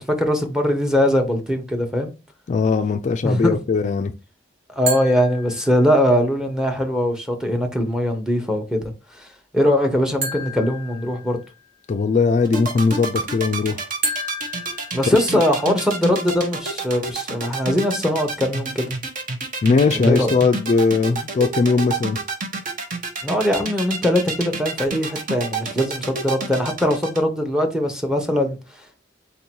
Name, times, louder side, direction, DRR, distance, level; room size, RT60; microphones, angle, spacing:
voice 1, 0.0-2.1 3.2-3.6 4.7-8.8 9.1-9.3 9.5-11.4 14.9-18.9 19.9-20.4 23.2-29.0, equal, 5° right, 0.8 m, -21 dB
voice 2, 2.5-4.1 11.9-13.9 15.3-15.4 19.6-22.2, left 4 dB, 40° left, 0.3 m, -19 dB
sound 1, 4.9-6.2 10.2-11.7 14.0-15.7, equal, 70° right, 1.5 m, -31 dB
sound 2, 12.4-27.2, right 3 dB, 45° right, 1.0 m, -28 dB
4.2 x 2.7 x 4.4 m
head